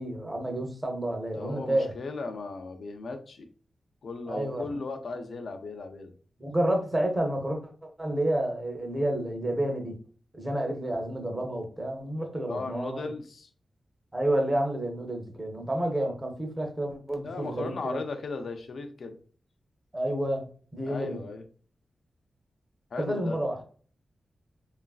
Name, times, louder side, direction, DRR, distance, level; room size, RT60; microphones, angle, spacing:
voice 1, 0.0-1.9 4.3-4.6 6.4-9.9 10.3-13.1 14.1-18.0 19.9-20.5 20.7-21.2 23.0-23.6, right 1 dB, 20° right, 3 dB, 0.6 m, -30 dB
voice 2, 1.3-3.5 4.0-6.1 12.5-13.5 17.2-19.2 20.8-21.4 22.9-23.4, left 3 dB, 70° left, 6 dB, 0.4 m, -37 dB
3.0 x 2.4 x 2.3 m, 0.43 s
wide cardioid pair, 140°, 0 cm